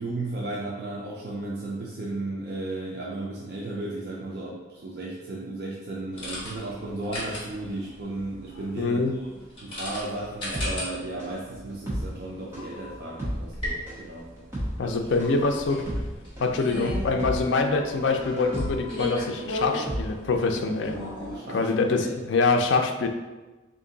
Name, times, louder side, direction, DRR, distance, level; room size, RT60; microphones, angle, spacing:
voice 1, 0.0-9.3 9.6-14.3 14.8-15.3 21.3-22.1, right 2 dB, 55° right, -4 dB, 0.4 m, -35 dB
sound 1, 6.1-21.4, left 1 dB, 30° left, 1.3 m, -37 dB
voice 2, 8.8-9.1 14.8-15.9 16.4-21.0 21.5-23.1, left 3 dB, 75° left, 5 dB, 0.4 m, -24 dB
sound 2, 10.5-20.7 21.0-21.1, equal, 10° right, 1.0 m, -34 dB
3.6 x 2.6 x 3.8 m, 1.2 s
head